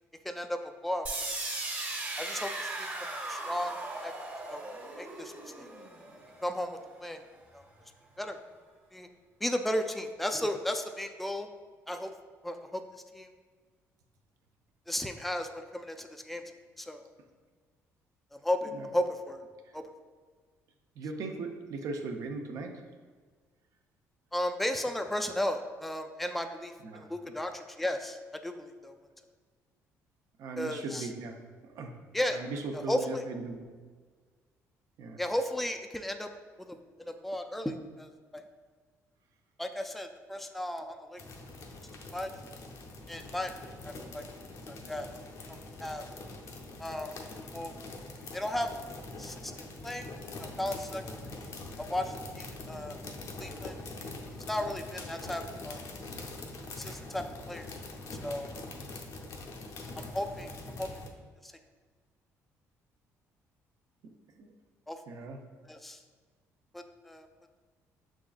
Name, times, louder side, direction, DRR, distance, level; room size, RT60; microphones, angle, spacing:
voice 1, 0.2-1.1 2.2-3.8 4.0-4.1 4.5-4.7 5.0-5.7 6.4-7.2 7.5-7.6 8.2-8.4 8.9-9.1 9.4-11.5 11.9-12.1 12.4-12.8 13.1-13.3 14.9-16.4 16.8-17.1 18.3-19.4 19.7-19.8 24.3-28.9 30.6-31.1 32.1-32.4 32.7-33.2 35.2-36.3 36.6-38.4 39.6-41.2 42.1-42.3 43.1-43.5 43.8-44.2 44.7-45.1 45.5-46.0 46.8-47.1 47.5-47.7 48.3-48.7 49.2-49.5 49.8-50.1 50.4-51.0 51.8-53.0 53.4-54.1 54.4-55.8 56.8-57.7 58.2-58.5 60.0-60.5 60.8-60.9 61.4-61.5 64.9-65.0 65.7-66.0 66.7-67.3, left 1 dB, ahead, 5 dB, 0.3 m, -35 dB
sound 1, 1.1-7.0, right 2 dB, 25° right, 0.9 m, -38 dB
voice 2, 21.0-22.8 26.8-27.3 30.4-31.4 31.7-31.9 32.3-33.7 35.0-35.2 64.4-64.5 65.1-65.4, right 3 dB, 70° right, 4 dB, 0.6 m, -38 dB
sound 2, 41.2-61.1, left 2 dB, 60° left, 0.6 m, -44 dB
5.9 x 3.6 x 2.4 m, 1.5 s
cardioid pair, 85°, 6 cm